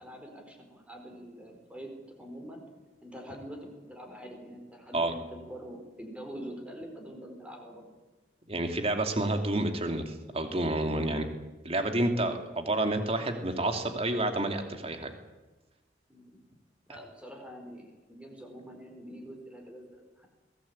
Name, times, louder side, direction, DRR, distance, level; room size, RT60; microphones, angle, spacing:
voice 1, 0.0-2.7 3.0-7.8 16.1-16.4 16.9-20.3, equal, 5° right, 2 dB, 4.6 m, -45 dB
voice 2, 8.5-11.3 11.6-15.1, right 1 dB, 35° right, 6 dB, 2.6 m, -29 dB
22.0 x 17.0 x 8.8 m, 1.2 s
head